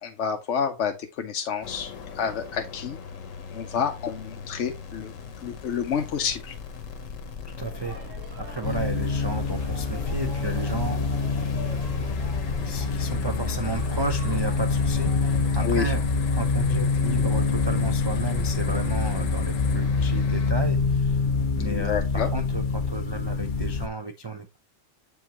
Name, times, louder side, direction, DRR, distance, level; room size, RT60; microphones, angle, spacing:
voice 1, 0.0-3.0 3.5-5.1 5.4-6.5 15.6-15.9 21.6-22.3, left 7 dB, 70° left, 1.0 m, -29 dB
sound 1, 1.6-20.5, left 6 dB, 90° left, 1.3 m, -38 dB
voice 2, 7.4-11.0 12.6-16.0 16.3-21.2 21.5-24.6, right 3 dB, 35° right, 0.4 m, -33 dB
sound 2, 7.6-16.0, right 2 dB, 80° right, 1.8 m, -44 dB
sound 3, 8.6-23.9, left 4 dB, 50° left, 0.7 m, -26 dB
7.1 x 5.3 x 2.9 m
omnidirectional pair, 1.3 m